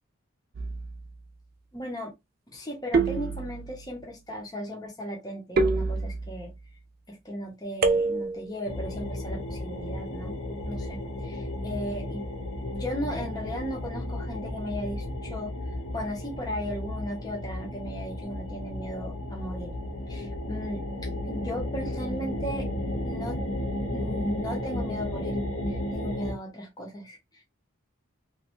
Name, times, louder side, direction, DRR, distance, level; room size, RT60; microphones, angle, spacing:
sound 1, 0.5-1.1 2.9-3.9 5.6-6.5 7.8-8.5, right 3 dB, 45° right, 0.4 m, -26 dB
voice 1, 1.7-2.1 2.5-6.5 7.1-10.4 10.6-12.3 12.7-15.5 15.9-22.7 23.0-23.4 23.9-25.4 25.7-27.5, equal, 20° left, 0.7 m, -36 dB
sound 2, 8.7-26.3, left 1 dB, 80° left, 0.8 m, -33 dB
3.1 x 2.2 x 3.0 m
head